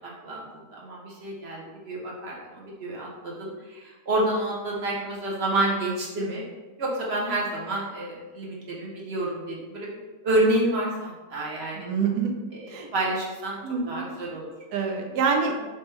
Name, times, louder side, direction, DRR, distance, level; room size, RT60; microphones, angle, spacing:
voice 1, 0.0-6.4 6.8-9.9 10.2-11.9 12.5-13.6 13.9-14.5, right 1 dB, 50° right, -3 dB, 0.9 m, -29 dB
voice 2, 11.7-12.3 12.7-12.9 13.6-14.1 14.7-15.7, right 5 dB, 75° right, 3 dB, 1.1 m, -26 dB
3.2 x 3.0 x 4.5 m, 1.2 s
omnidirectional pair, 1.7 m